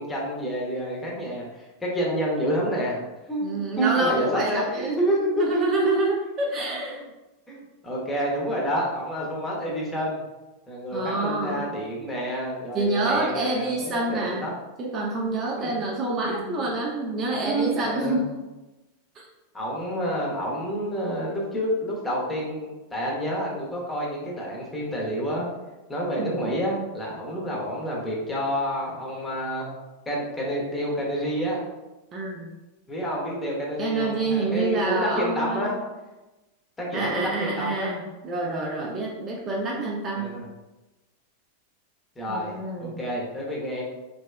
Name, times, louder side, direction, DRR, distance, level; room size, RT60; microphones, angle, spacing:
voice 1, 0.0-3.0 3.3-6.0 7.5-10.2 10.7-14.5 15.6-15.7 16.2-16.7 17.4-18.2 19.5-25.5 25.9-29.7 30.1-31.6 32.9-35.7 36.8-37.9 40.1-40.4 42.2-43.8, equal, 15° left, -3 dB, 0.8 m, -29 dB
voice 2, 3.4-7.0 10.9-11.6 12.7-14.5 14.8-18.3 19.2-19.3 26.2-26.4 32.1-32.5 33.8-35.7 36.9-38.0 38.2-40.4 42.3-43.0, right 2 dB, 30° right, -2 dB, 0.4 m, -27 dB
3.0 x 2.7 x 2.3 m, 1.1 s
figure-of-eight pair, 90°, 0 cm